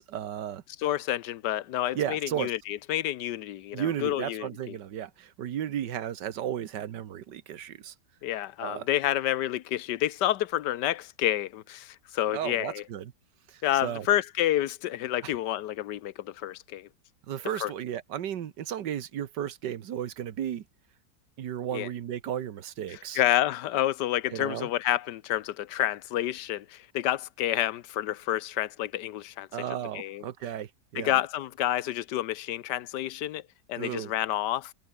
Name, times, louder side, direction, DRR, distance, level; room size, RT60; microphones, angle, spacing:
voice 1, 0.0-0.6 1.9-2.5 3.7-7.9 8.6-8.9 12.3-13.1 13.5-14.1 15.2-15.3 17.3-20.6 21.4-23.2 24.3-24.7 29.5-31.2 33.8-34.1, right 10 dB, 85° right, 1.8 m, -34 dB
voice 2, 0.8-4.8 8.2-12.8 13.6-16.9 17.6-17.7 21.7-21.9 22.9-29.5 29.9-30.2 30.9-33.4 33.7-34.7, left 13 dB, 90° left, 1.4 m, -29 dB
omnidirectional pair, 1.8 m